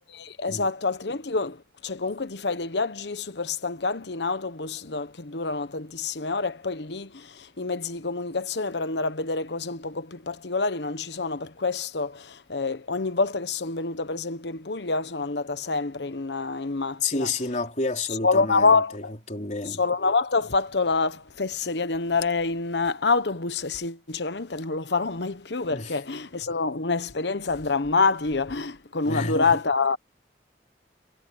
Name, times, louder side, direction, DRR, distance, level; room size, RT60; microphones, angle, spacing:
voice 1, 0.1-17.3 18.2-19.1 19.7-30.0, left 4 dB, 75° left, 1.1 m, -27 dB
voice 2, 17.0-19.0 19.3-19.8 25.6-26.0 29.1-29.6, left 3 dB, 40° left, 4.1 m, -30 dB
head